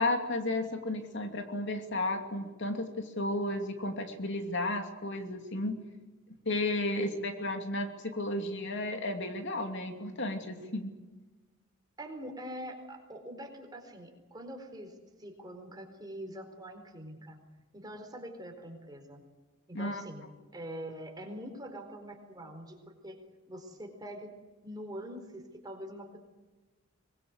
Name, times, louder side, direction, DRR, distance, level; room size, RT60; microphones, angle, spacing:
voice 1, 0.0-5.8 6.5-10.9 19.7-20.0, left 2 dB, 55° left, 5 dB, 2.6 m, -33 dB
voice 2, 12.0-17.4 17.7-19.2 19.7-20.3 20.5-23.2 23.5-24.3 24.6-26.2, equal, 20° right, 4 dB, 4.3 m, -44 dB
24.0 x 21.5 x 8.0 m, 1.2 s
head